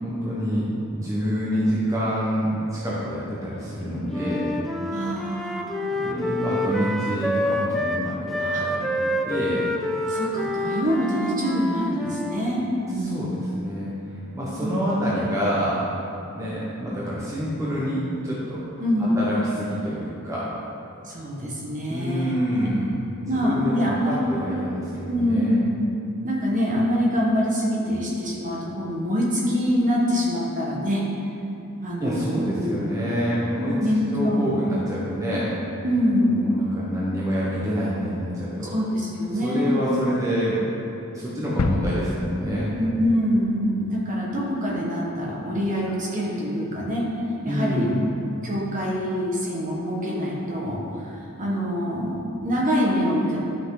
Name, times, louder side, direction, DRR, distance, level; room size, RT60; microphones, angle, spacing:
voice 1, 0.0-4.5 5.9-9.7 13.0-13.9 14.3-15.8 16.3-20.5 21.9-25.6 32.0-33.7 34.1-35.5 36.3-38.7 39.4-40.6 41.1-42.8 47.5-48.0, equal, 15° right, -8 dB, 1.2 m, -27 dB
Wind instrument woodwind instrument, 4.1-12.4, left 1 dB, ahead, 0.4 m, -27 dB
voice 2, 4.9-5.9 8.4-8.6 10.1-13.3 14.6-14.8 18.8-19.2 21.1-22.3 23.3-24.2 25.1-25.6 26.2-31.0 31.8-32.7 33.6-34.6 35.8-36.5 38.7-39.7 42.7-47.1 47.4-47.9 48.4-50.8 51.4-53.4, equal, 35° right, -4 dB, 1.6 m, -25 dB
sound 1, 41.6-43.5 43.9-44.0, left 2 dB, 85° left, 0.5 m, -30 dB
11.5 x 5.9 x 4.0 m, 3.0 s
head